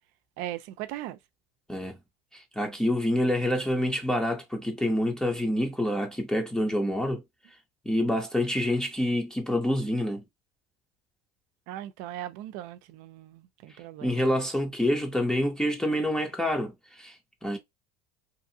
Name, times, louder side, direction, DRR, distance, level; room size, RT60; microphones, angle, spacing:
voice 1, 0.4-1.2 11.7-14.3, right 13 dB, 70° right, 0.5 m, -39 dB
voice 2, 2.3-7.2 7.9-10.2 14.0-17.6, left 1 dB, 5° left, 0.6 m, -27 dB
2.7 x 2.5 x 2.7 m
supercardioid pair, 115°, 14 cm